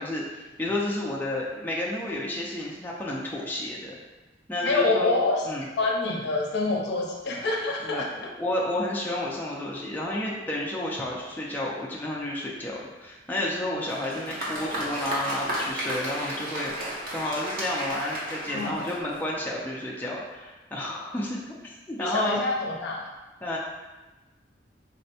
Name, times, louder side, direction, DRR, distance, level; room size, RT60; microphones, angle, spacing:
voice 1, 0.0-4.0 4.5-5.2 5.5-5.6 7.8-22.4 23.4-23.6, left 1 dB, 10° left, -5 dB, 0.4 m, -31 dB
voice 2, 4.6-8.1 18.5-18.8 22.0-23.1, left 3 dB, 65° left, -1 dB, 0.6 m, -26 dB
Applause, 13.8-19.3, equal, 50° right, 0.8 m, -33 dB
4.1 x 2.1 x 2.6 m, 1.1 s
head